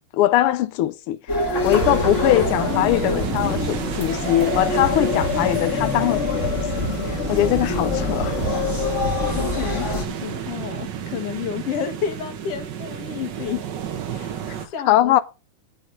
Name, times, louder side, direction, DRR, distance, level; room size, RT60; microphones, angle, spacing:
voice 1, 0.1-8.3 14.9-15.2, left 14 dB, 90° left, 1.2 m, -21 dB
sound 1, 1.3-10.0, left 3 dB, 30° left, 1.5 m, -25 dB
sound 2, 1.7-14.7, right 9 dB, 65° right, 1.1 m, -31 dB
voice 2, 9.3-13.7 14.1-15.2, left 8 dB, 60° left, 2.4 m, -31 dB
8.4 x 7.5 x 5.4 m
omnidirectional pair, 3.3 m